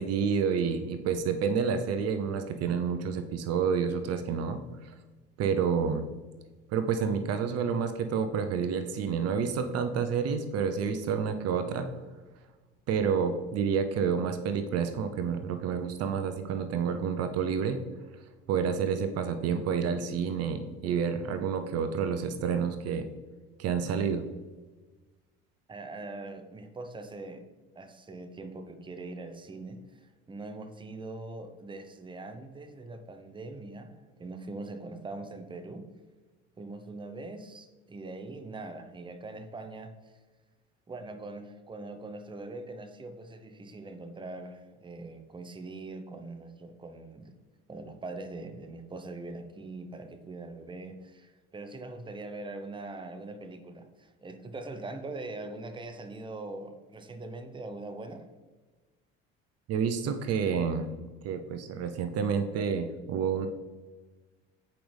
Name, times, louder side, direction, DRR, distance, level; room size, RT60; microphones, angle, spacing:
voice 1, 0.0-4.9 5.4-6.1 6.7-11.9 12.9-17.8 18.5-23.0 23.6-24.2 59.7-60.9 61.2-63.5, right 6 dB, 55° right, 8 dB, 0.8 m, -29 dB
voice 2, 25.7-27.4 27.7-35.9 36.6-40.1 40.9-47.3 47.7-58.2, right 2 dB, 15° right, 8 dB, 0.8 m, -42 dB
8.6 x 5.2 x 3.4 m, 1.3 s
supercardioid pair, 75°, 30 cm